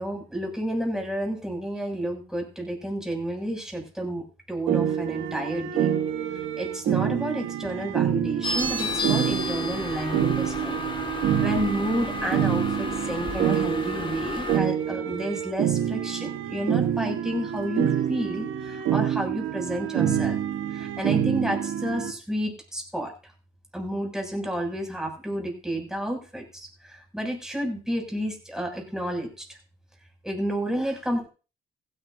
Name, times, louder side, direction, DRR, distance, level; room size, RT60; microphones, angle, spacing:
voice 1, 0.0-5.9 6.6-10.8 11.4-20.4 20.7-23.1 23.7-29.4 30.2-31.3, equal, 5° right, 1 dB, 6.8 m, -31 dB
sound 1, 4.7-22.1, right 9 dB, 85° right, 1.4 m, -27 dB
sound 2, 8.4-14.6, left 2 dB, 25° left, 4.5 m, -32 dB
16.0 x 13.5 x 2.7 m, 0.35 s
cardioid pair, 90°, 20 cm